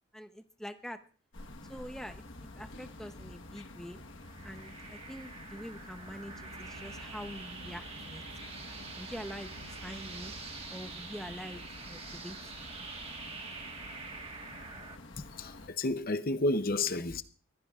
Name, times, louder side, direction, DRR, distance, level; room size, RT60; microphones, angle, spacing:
voice 1, 0.1-1.0 1.7-4.0 4.4-8.2 9.0-10.3 10.7-11.6 11.9-12.7, equal, ahead, 0.7 m, -45 dB
sound 1, 1.3-15.7, left 2 dB, 60° left, 1.3 m, -49 dB
sound 2, 4.2-15.0, right 4 dB, 25° right, 1.4 m, -46 dB
sound 3, 6.3-10.3, right 1 dB, 60° right, 6.4 m, -53 dB
voice 2, 15.2-17.2, left 2 dB, 40° left, 0.7 m, -31 dB
22.5 x 15.5 x 2.4 m
head